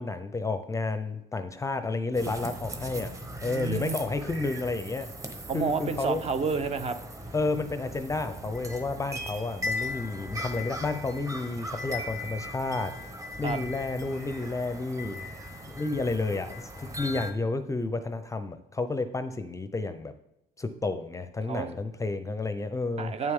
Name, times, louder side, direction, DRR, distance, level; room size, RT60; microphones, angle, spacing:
voice 1, 0.0-3.1 3.4-5.1 5.5-6.2 7.3-12.9 13.4-15.2 15.6-20.1 20.6-23.1, left 3 dB, 20° left, 10 dB, 0.6 m, -31 dB
sound 1, 2.1-17.3, left 1 dB, 20° right, 1.0 m, -39 dB
voice 2, 3.4-4.0 5.5-7.0 13.4-13.6 21.5-21.7 23.0-23.3, right 5 dB, 40° right, 9 dB, 0.7 m, -30 dB
8.7 x 6.7 x 3.6 m, 0.85 s
cardioid pair, 110°, 17 cm